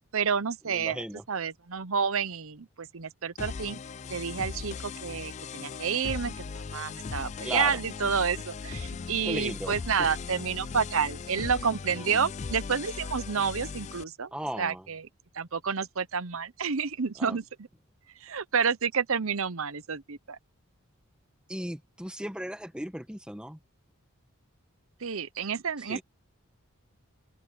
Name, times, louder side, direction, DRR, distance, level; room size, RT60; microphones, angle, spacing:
voice 1, 0.1-3.8 4.1-15.1 15.3-17.4 18.2-20.4 25.0-26.0, right 6 dB, 70° right, 0.8 m, -30 dB
voice 2, 0.7-1.2 7.4-7.8 9.2-9.8 11.9-12.3 14.3-14.9 17.2-17.4 21.5-23.6 25.9-26.0, equal, 5° right, 1.6 m, -36 dB
sound 1, 3.4-14.0, left 5 dB, 30° left, 0.3 m, -38 dB
head